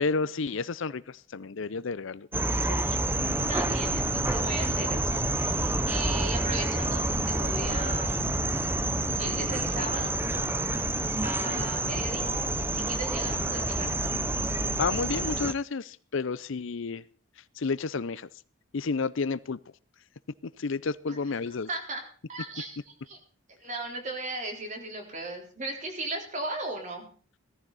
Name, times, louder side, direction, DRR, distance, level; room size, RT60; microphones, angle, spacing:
voice 1, 0.0-2.3 2.6-3.0 14.8-17.0 17.6-18.3 18.7-19.6 20.6-21.7, left 4 dB, 65° left, 0.6 m, -31 dB
sound 1, 2.3-15.5, right 2 dB, 10° right, 0.6 m, -28 dB
voice 2, 3.5-8.3 9.1-10.1 11.2-12.5 12.7-13.9 21.1-21.2 21.7-22.0 22.3-23.2 23.5-27.1, right 2 dB, 35° right, 4.0 m, -37 dB
17.5 x 14.5 x 4.1 m
head